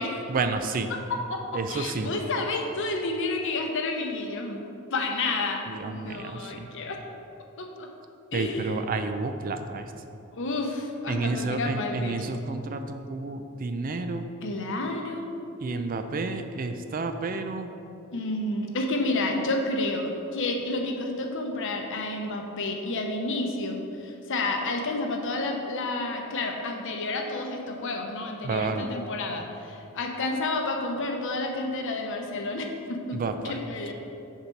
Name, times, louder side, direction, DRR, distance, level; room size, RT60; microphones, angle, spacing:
voice 1, 0.3-0.9 1.5-2.1 5.7-6.7 8.3-9.9 11.1-14.3 15.6-17.7 28.4-28.9 33.1-33.6, right 3 dB, 40° right, 8 dB, 0.4 m, -30 dB
voice 2, 0.9-1.4 1.7-4.6 4.9-7.0 7.6-7.9 8.3-8.8 10.3-12.1 14.4-15.3 18.1-33.2 33.4-33.9, left 2 dB, 60° left, 2 dB, 0.8 m, -30 dB
6.7 x 5.7 x 4.6 m, 2.7 s
head